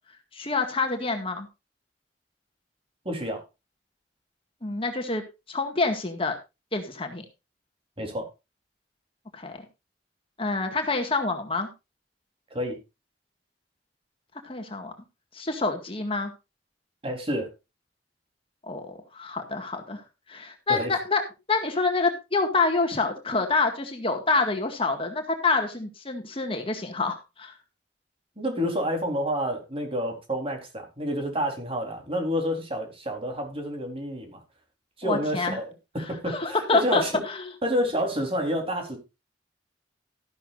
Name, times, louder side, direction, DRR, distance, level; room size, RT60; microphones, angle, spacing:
voice 1, 0.3-1.5 4.6-5.2 5.5-6.4 6.7-7.3 9.3-9.6 10.4-11.7 14.4-14.9 15.3-16.3 18.6-20.0 20.3-21.2 21.5-27.6 35.0-35.6 36.3-37.4, left 3 dB, 30° left, 4 dB, 2.0 m, -27 dB
voice 2, 3.0-3.4 8.0-8.3 12.5-12.8 17.0-17.5 20.7-20.9 28.4-34.4 35.0-35.7 35.9-37.2 37.6-39.0, equal, 35° right, 3 dB, 4.1 m, -29 dB
14.0 x 11.5 x 2.6 m, 0.26 s
head